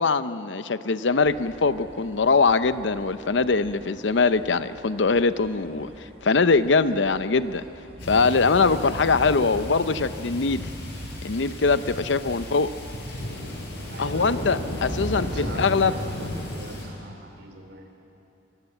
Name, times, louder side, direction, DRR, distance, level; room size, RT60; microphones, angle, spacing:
voice 1, 0.0-5.9 6.2-7.6 8.0-10.7 11.2-12.7 14.0-15.9, left 4 dB, 80° left, 13 dB, 0.7 m, -22 dB
sound 1, 1.2-16.9, right 1 dB, 35° right, 3.3 m, -49 dB
sound 2, 8.0-16.8, left 1 dB, 60° left, 5.4 m, -34 dB
voice 2, 13.9-14.7 15.0-17.9, right 1 dB, 65° right, 4 dB, 3.4 m, -42 dB
24.5 x 20.5 x 8.0 m, 2.8 s
head